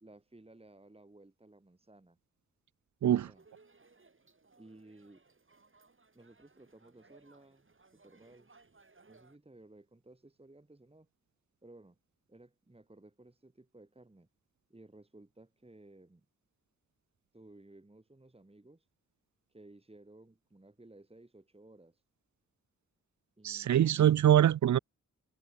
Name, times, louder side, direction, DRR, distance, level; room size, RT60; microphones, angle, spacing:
voice 1, 0.0-2.2 3.3-3.5 4.6-5.2 6.1-7.6 7.9-8.5 9.1-11.1 11.6-12.0 12.3-14.3 14.7-16.3 17.3-18.9 19.5-22.0 23.4-23.9, right 2 dB, 20° right, 2.6 m, -57 dB
sound 1, 3.3-9.4, right 3 dB, 40° right, 4.9 m, -64 dB
voice 2, 23.4-24.8, right 10 dB, 65° right, 0.4 m, -24 dB
wide cardioid pair, 85°, 31 cm